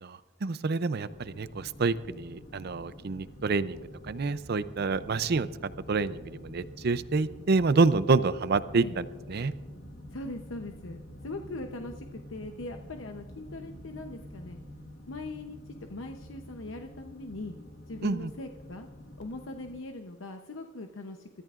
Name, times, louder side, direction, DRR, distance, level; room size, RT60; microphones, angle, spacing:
voice 1, 0.0-5.5 5.9-9.5 18.0-18.3, right 4 dB, 55° right, 14 dB, 0.5 m, -28 dB
sound 1, 1.0-19.8, left 1 dB, 60° left, 1.6 m, -47 dB
voice 2, 10.1-14.6 15.1-17.5 17.9-18.9 19.2-21.3, left 2 dB, 75° left, 5 dB, 0.8 m, -41 dB
28.5 x 14.0 x 2.5 m, 1.4 s
head